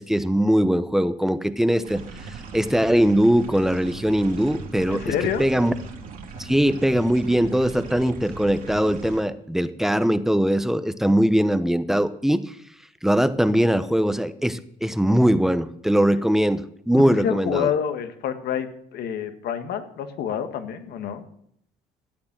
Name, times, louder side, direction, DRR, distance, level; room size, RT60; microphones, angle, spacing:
voice 1, 0.0-5.1 5.4-5.7 6.4-12.4 13.0-17.7, equal, ahead, 12 dB, 0.9 m, -21 dB
sound 1, 1.8-9.2, right 4 dB, 55° right, 3.3 m, -39 dB
voice 2, 4.9-5.5 16.9-21.2, left 8 dB, 70° left, 8 dB, 1.7 m, -28 dB
14.0 x 8.7 x 7.4 m, 0.69 s
cardioid pair, 110°, 17 cm